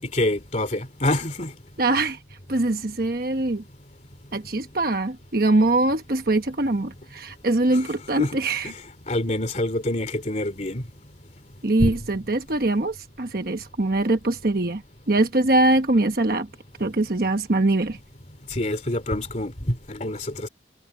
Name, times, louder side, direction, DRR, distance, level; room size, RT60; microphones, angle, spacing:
voice 1, 0.1-1.5 7.7-8.4 8.6-8.8 9.1-10.8 11.8-11.9 18.5-20.5, left 1 dB, 40° left, 3.2 m, -26 dB
voice 2, 1.8-2.2 2.5-3.6 4.3-8.7 11.6-14.8 15.1-16.5 16.8-18.0, right 2 dB, 55° right, 1.1 m, -22 dB
head